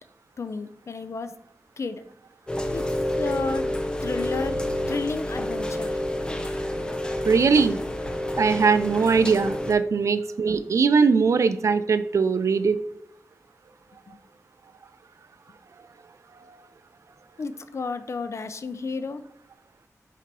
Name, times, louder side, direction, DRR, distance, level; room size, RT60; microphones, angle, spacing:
voice 1, 0.4-1.4 1.8-2.0 2.7-2.9 3.2-3.7 4.0-4.6 4.9-6.0 14.1-14.2 17.4-19.2, left 4 dB, 55° left, 11 dB, 0.5 m, -32 dB
Rain, 2.5-9.7, left 1 dB, 15° left, 0.7 m, -29 dB
voice 2, 7.2-7.8 8.4-12.8, right 5 dB, 65° right, 11 dB, 0.4 m, -21 dB
7.3 x 2.9 x 5.3 m, 0.75 s
wide cardioid pair, 115°, 6 cm